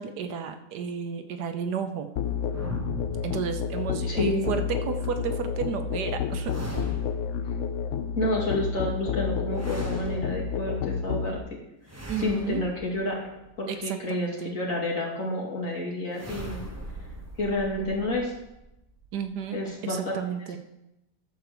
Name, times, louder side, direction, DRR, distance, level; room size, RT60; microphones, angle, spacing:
voice 1, 0.0-2.1 3.2-6.5 12.1-12.6 13.7-14.6 19.1-20.6, right 7 dB, 75° right, 8 dB, 1.3 m, -32 dB
Musical instrument, 2.2-11.4, left 7 dB, 70° left, 0.7 m, -30 dB
sound 1, 2.5-4.0 6.4-7.5 9.5-10.7 11.9-13.7 16.1-19.7, right 1 dB, 15° right, 0.5 m, -40 dB
voice 2, 4.1-4.5 7.4-7.5 8.2-11.4 12.2-13.2 13.6-16.6 17.4-18.3 19.5-20.0, left 1 dB, 50° left, -4 dB, 2.8 m, -29 dB
12.5 x 4.6 x 6.8 m, 0.88 s
omnidirectional pair, 1.8 m